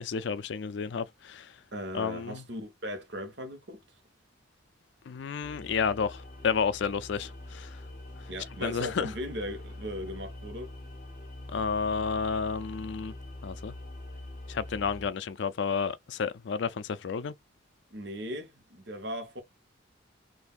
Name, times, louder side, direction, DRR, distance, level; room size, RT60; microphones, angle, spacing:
voice 1, 0.0-1.5 1.9-2.4 5.1-7.8 8.6-9.1 11.5-13.1 13.4-13.8 14.5-17.3, left 5 dB, 65° left, 0.4 m, -31 dB
voice 2, 1.7-3.8 8.3-10.7 17.9-19.4, equal, 60° right, 1.1 m, -38 dB
sound 1, 5.4-15.1, left 1 dB, 40° left, 1.2 m, -44 dB
3.9 x 2.6 x 2.4 m
head